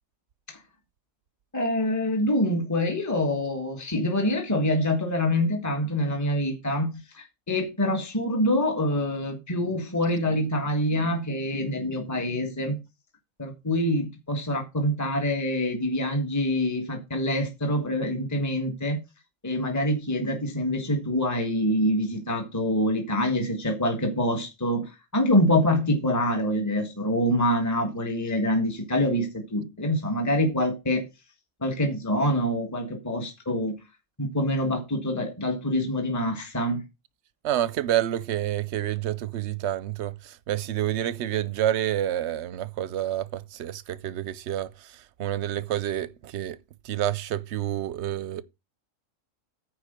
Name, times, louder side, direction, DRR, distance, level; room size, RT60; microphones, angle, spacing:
voice 1, 1.5-12.8 13.4-19.0 19.4-31.1 31.6-33.8 34.2-36.8, left 1 dB, 15° left, 1.4 m, -25 dB
voice 2, 37.4-46.6 46.8-48.4, right 12 dB, 65° right, 0.8 m, -28 dB
9.6 x 4.3 x 6.6 m
omnidirectional pair, 1.4 m